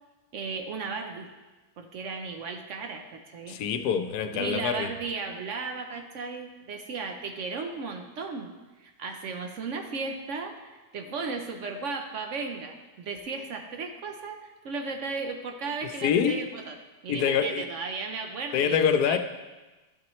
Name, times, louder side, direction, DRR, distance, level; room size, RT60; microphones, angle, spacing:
voice 1, 0.3-1.3 1.8-3.6 4.3-8.5 8.8-16.8 17.0-19.2, right 4 dB, 60° right, 5 dB, 0.9 m, -35 dB
voice 2, 3.5-4.9 16.0-16.4 17.1-17.6 18.5-19.2, left 7 dB, 90° left, 8 dB, 1.1 m, -25 dB
11.5 x 5.7 x 3.1 m, 1.2 s
omnidirectional pair, 1.6 m